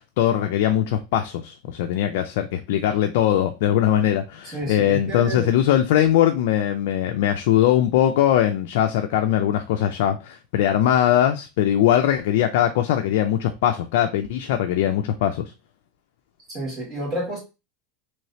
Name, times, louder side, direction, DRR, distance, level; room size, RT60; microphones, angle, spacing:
voice 1, 0.2-15.4, left 11 dB, 65° left, 0.4 m, -21 dB
voice 2, 4.5-5.5 16.5-17.4, right 1 dB, 25° right, 2.1 m, -30 dB
3.1 x 3.1 x 2.7 m
supercardioid pair, 155°, 0 cm